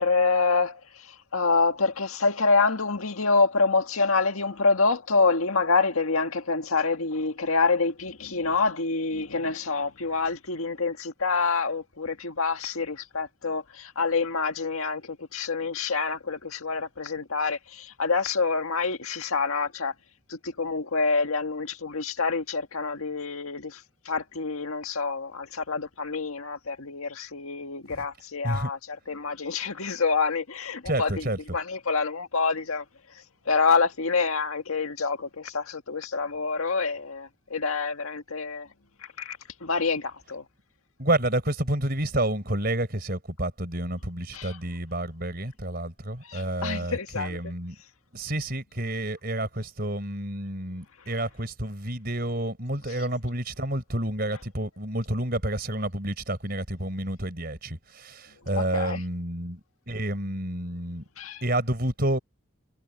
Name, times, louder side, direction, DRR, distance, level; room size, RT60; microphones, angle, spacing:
voice 1, 0.0-19.9 20.3-31.3 31.5-32.8 33.5-38.7 39.2-40.4 44.3-44.6 46.2-47.4 58.6-59.0 61.2-61.4, left 4 dB, 90° left, 1.9 m, -27 dB
voice 2, 30.9-31.4 41.0-47.8 48.1-59.6 59.9-61.0 61.4-62.2, right 1 dB, 45° right, 4.3 m, -29 dB
head